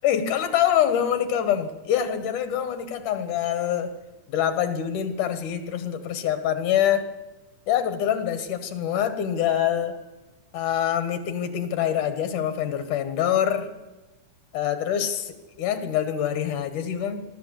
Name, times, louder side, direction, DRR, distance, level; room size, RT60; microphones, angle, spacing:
voice 1, 0.0-4.0 4.3-7.1 7.7-10.0 10.5-13.7 14.5-17.2, left 10 dB, 70° left, 10 dB, 3.1 m, -25 dB
23.5 x 13.0 x 8.4 m, 1.1 s
omnidirectional pair, 3.8 m